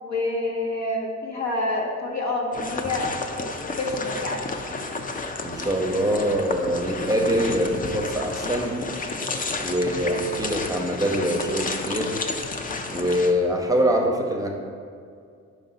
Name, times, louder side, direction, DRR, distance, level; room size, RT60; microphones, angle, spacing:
voice 1, 0.0-3.5 3.8-4.5, left 2 dB, 65° left, 0 dB, 1.0 m, -28 dB
sound 1, 2.5-13.3, left 3 dB, 30° left, 0.5 m, -31 dB
voice 2, 5.4-8.8 9.6-12.1 12.9-14.5, equal, 10° right, 1 dB, 0.7 m, -24 dB
5.3 x 4.8 x 4.0 m, 2.3 s
cardioid pair, 75°, 30 cm